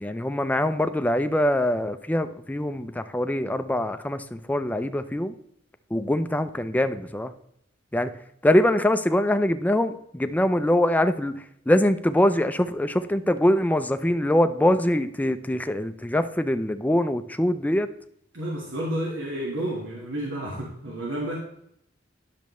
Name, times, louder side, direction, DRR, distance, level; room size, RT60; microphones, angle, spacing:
voice 1, 0.0-5.3 5.9-7.3 7.9-8.1 8.4-17.9, left 1 dB, 10° left, 10 dB, 0.4 m, -23 dB
voice 2, 18.3-21.4, right 1 dB, 90° right, -3 dB, 1.6 m, -31 dB
10.5 x 6.7 x 3.1 m, 0.75 s
head